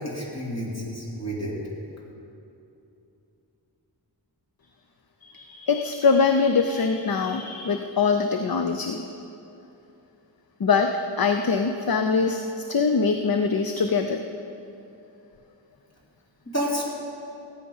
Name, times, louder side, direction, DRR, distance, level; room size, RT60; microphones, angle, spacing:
voice 1, 0.0-1.6 16.4-16.8, equal, 35° left, -4 dB, 3.3 m, -30 dB
voice 2, 5.2-9.1 10.6-12.4 12.7-14.2, left 5 dB, 55° left, 6 dB, 0.7 m, -23 dB
17.5 x 9.1 x 5.6 m, 2.8 s
wide cardioid pair, 55°, 44 cm